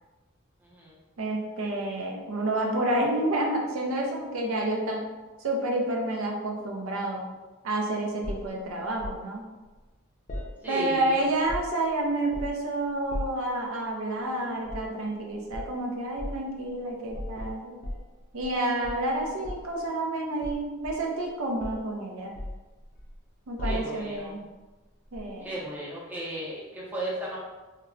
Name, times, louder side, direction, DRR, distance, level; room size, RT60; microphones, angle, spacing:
voice 1, 0.6-1.0 10.6-11.2 23.6-24.4 25.4-27.4, right 1 dB, 10° right, -7 dB, 0.5 m, -35 dB
voice 2, 1.2-5.0 5.4-7.2 7.6-9.4 10.7-17.8 18.3-22.3 23.5-24.4 25.1-25.5, right 1 dB, 75° right, 0 dB, 0.5 m, -29 dB
sound 1, 8.2-9.2 10.3-11.0 11.3-11.9 12.3-12.7 13.1-13.5 14.6-14.9 15.5-15.8 16.2-16.4 17.1-18.6 18.8-19.8 20.4-21.3 21.6-21.9 22.4-23.2 23.6-24.2 25.1-25.3, left 1 dB, 40° left, 0.4 m, -37 dB
2.2 x 2.1 x 3.6 m, 1.2 s
head